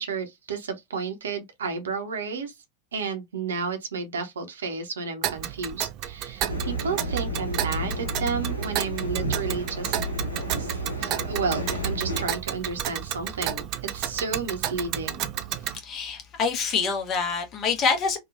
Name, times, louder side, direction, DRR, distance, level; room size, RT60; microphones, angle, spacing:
voice 1, 0.0-2.5 2.9-10.0 10.6-15.3, right 5 dB, 65° right, 0.7 m, -32 dB
Tick, 5.2-15.8, right 11 dB, 40° right, 0.4 m, -32 dB
sound 1, 6.5-12.3, right 1 dB, 85° left, 0.9 m, -31 dB
voice 2, 15.7-18.2, left 5 dB, 30° left, 0.9 m, -26 dB
2.9 x 2.3 x 2.4 m
figure-of-eight pair, 90°, 0 cm